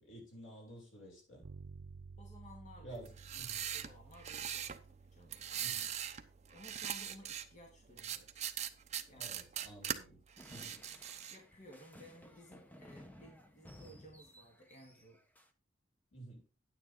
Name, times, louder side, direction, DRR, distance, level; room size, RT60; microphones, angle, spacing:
voice 1, 0.0-1.4 2.8-3.6 5.6-5.9 9.1-10.8 16.1-16.5, right 1 dB, 80° left, 6.3 m, -52 dB
Bass guitar, 1.4-11.2, right 4 dB, 85° right, 0.7 m, -57 dB
voice 2, 2.2-3.0 3.7-5.8 6.5-8.3 9.1-9.4 10.5-15.2, equal, 35° left, 2.1 m, -57 dB
sound 1, 3.1-4.8 5.3-6.2 6.5-7.5 8.0-10.0 10.4-11.4, right 9 dB, 35° right, 0.8 m, -40 dB
sound 2, 10.4-15.5, equal, 10° left, 0.9 m, -57 dB
9.6 x 9.5 x 3.7 m
head